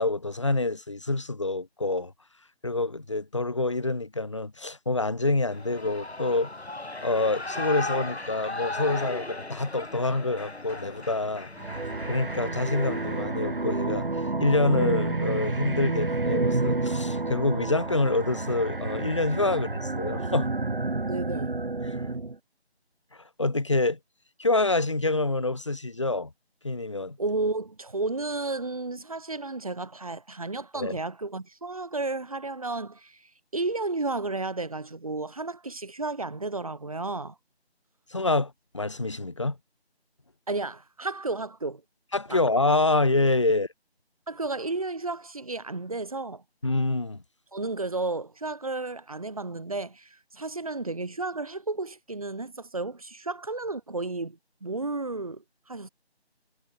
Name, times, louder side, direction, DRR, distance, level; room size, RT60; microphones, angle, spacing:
voice 1, 0.0-2.1 2.6-6.5 7.0-11.5 12.1-20.5 21.8-22.0 23.1-24.0 24.4-26.3 26.6-27.2 30.8-31.0 38.1-39.6 42.1-43.7 46.6-47.2, left 2 dB, 30° left, 2.0 m, -27 dB
Shout / Cheering, 5.5-13.2, left 2 dB, 75° left, 5.2 m, -37 dB
sound 1, 11.6-22.3, right 2 dB, 55° right, 2.4 m, -29 dB
voice 2, 20.8-21.5 27.2-37.3 40.5-41.8 42.3-42.4 44.3-46.4 47.5-55.9, right 3 dB, 35° right, 2.9 m, -32 dB
figure-of-eight pair, 175°, 33 cm